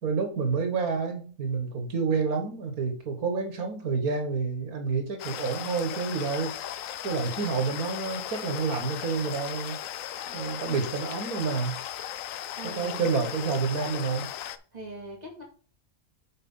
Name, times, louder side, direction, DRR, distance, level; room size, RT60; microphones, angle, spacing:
voice 1, 0.0-6.5 7.0-9.8 10.3-11.8 12.6-14.3, right 5 dB, 85° right, 6 dB, 2.0 m, -29 dB
sound 1, 5.2-14.6, left 11 dB, 70° left, 0.9 m, -37 dB
voice 2, 12.5-13.0 14.7-15.4, right 1 dB, 30° right, 0 dB, 2.6 m, -41 dB
6.7 x 4.6 x 5.6 m, 0.41 s
omnidirectional pair, 1.5 m